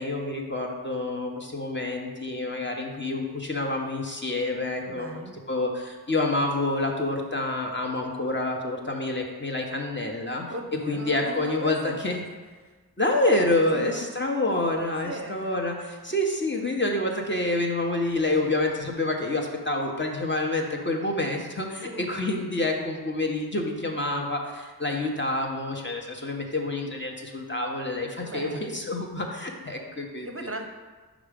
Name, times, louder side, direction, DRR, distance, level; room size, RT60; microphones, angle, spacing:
voice 1, 0.0-5.1 5.5-10.4 10.9-12.2 13.0-30.3, left 2 dB, 30° left, 1 dB, 0.9 m, -28 dB
voice 2, 4.9-5.3 10.5-12.2 12.6-12.8 13.6-14.1 15.0-15.6 21.8-22.2 28.2-28.8 30.2-30.7, right 2 dB, 35° right, 3 dB, 0.6 m, -37 dB
5.1 x 4.3 x 5.1 m, 1.3 s
cardioid pair, 45°, 38 cm